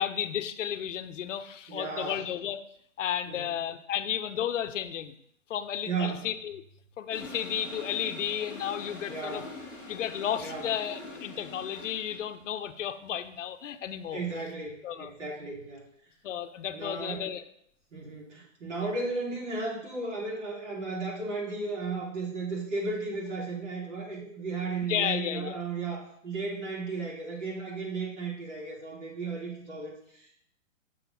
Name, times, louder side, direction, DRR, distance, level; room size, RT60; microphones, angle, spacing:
voice 1, 0.0-2.6 3.0-5.1 5.5-6.6 7.0-9.5 9.9-14.2 14.8-15.1 16.2-17.4 18.8-18.9 24.9-25.7, left 9 dB, 70° left, 10 dB, 0.6 m, -33 dB
voice 2, 1.7-2.2 3.3-3.5 5.8-6.3 9.1-9.5 10.4-10.7 14.1-15.9 16.7-17.3 17.9-30.3, right 3 dB, 65° right, -3 dB, 3.0 m, -35 dB
Toilet flush, 7.1-12.3, left 2 dB, 5° right, 1.1 m, -44 dB
6.8 x 3.6 x 5.7 m, 0.67 s
hypercardioid pair, 165°, 39 cm